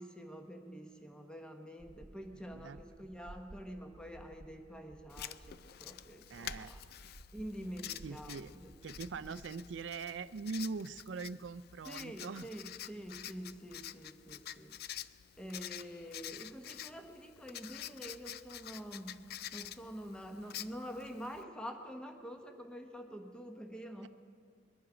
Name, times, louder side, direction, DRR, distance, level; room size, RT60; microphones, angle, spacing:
voice 1, 0.0-6.8 7.3-8.7 9.3-9.4 11.9-14.7 15.4-19.2 19.5-24.1, equal, 5° left, 4 dB, 1.0 m, -47 dB
sound 1, 1.8-9.3, right 1 dB, 55° right, 0.8 m, -56 dB
voice 2, 2.3-2.8 6.3-6.7 8.0-8.5 8.8-12.5 24.0-24.1, right 4 dB, 75° right, 16 dB, 0.4 m, -42 dB
Writing, 5.1-21.4, left 12 dB, 60° left, 0.4 m, -48 dB
22.0 x 11.0 x 5.0 m, 2.1 s
head